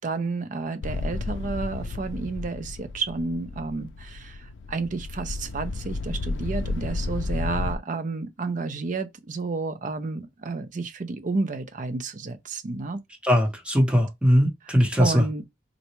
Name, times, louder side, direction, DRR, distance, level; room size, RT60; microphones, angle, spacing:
voice 1, 0.0-13.0 15.0-15.5, right 3 dB, 45° right, 0.4 m, -31 dB
sound 1, 0.8-7.8, left 3 dB, 90° left, 0.4 m, -32 dB
voice 2, 13.2-15.2, equal, 5° right, 0.8 m, -20 dB
3.9 x 2.2 x 2.9 m
head